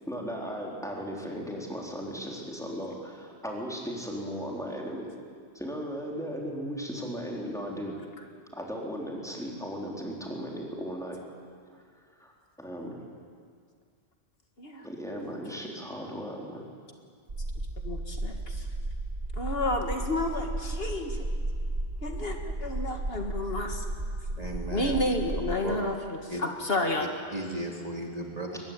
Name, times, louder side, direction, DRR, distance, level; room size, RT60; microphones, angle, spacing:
voice 1, 0.1-5.1 5.5-8.0 8.5-11.2 11.7-11.8 12.2-12.3 12.6-13.0 14.8-16.7, equal, 5° left, -2 dB, 4.3 m, -36 dB
sound 1, 17.3-25.6, right 2 dB, 55° right, 1.9 m, -34 dB
voice 2, 17.8-18.7 19.4-21.3 22.0-23.9 24.7-27.1, left 2 dB, 60° left, 4 dB, 2.1 m, -31 dB
voice 3, 24.4-25.0 25.6-25.8 26.3-26.4 27.3-28.6, right 1 dB, 35° right, 1 dB, 2.7 m, -35 dB
22.5 x 21.0 x 9.2 m, 2.1 s
omnidirectional pair, 1.1 m